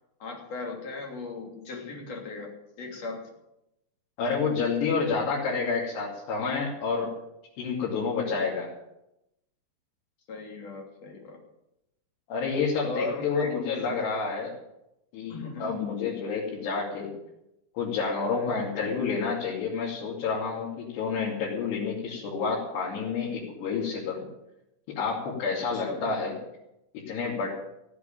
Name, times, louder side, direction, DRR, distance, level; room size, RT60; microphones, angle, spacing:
voice 1, 0.2-2.5 2.8-3.3 10.3-11.4 12.8-13.5 15.3-15.8 18.3-18.5 25.7-26.0, left 3 dB, 40° left, 0 dB, 3.8 m, -37 dB
voice 2, 4.2-7.1 7.6-8.7 12.3-14.5 15.1-17.1 17.7-24.2 24.9-26.3 27.1-27.5, left 5 dB, 85° left, -5 dB, 4.8 m, -29 dB
16.0 x 8.2 x 8.9 m, 0.87 s
omnidirectional pair, 4.7 m